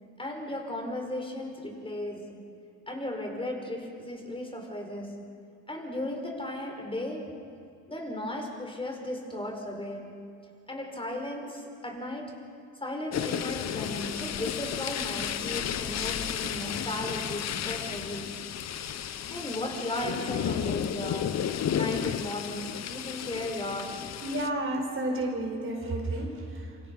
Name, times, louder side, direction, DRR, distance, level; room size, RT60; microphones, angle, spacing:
voice 1, 0.2-2.3 2.9-5.3 5.7-7.4 7.9-10.2 10.7-12.4 12.8-18.4 19.3-24.1, left 1 dB, 20° left, 2 dB, 5.1 m, -36 dB
sound 1, 13.1-24.5, left 9 dB, 60° left, 1.0 m, -33 dB
voice 2, 24.2-26.8, right 1 dB, 45° right, 1 dB, 5.1 m, -31 dB
28.0 x 26.0 x 5.6 m, 2.5 s
cardioid pair, 90°, 30 cm